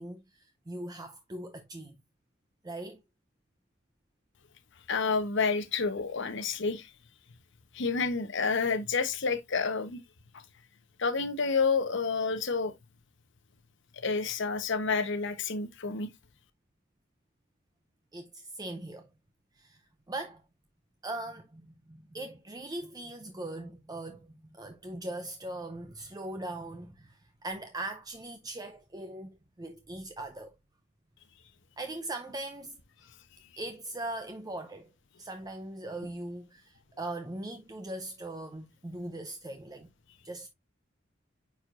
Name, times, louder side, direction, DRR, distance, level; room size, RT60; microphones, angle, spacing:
voice 1, 0.0-2.0 2.6-3.0 18.1-19.1 19.6-20.4 21.0-30.5 31.8-32.8 33.6-34.9 35.2-39.9 40.2-40.5, right 2 dB, 20° right, 0.6 m, -40 dB
voice 2, 4.9-6.9 7.7-10.0 11.0-12.7 14.0-16.1, left 4 dB, 65° left, 1.0 m, -29 dB
9.2 x 4.6 x 2.5 m
head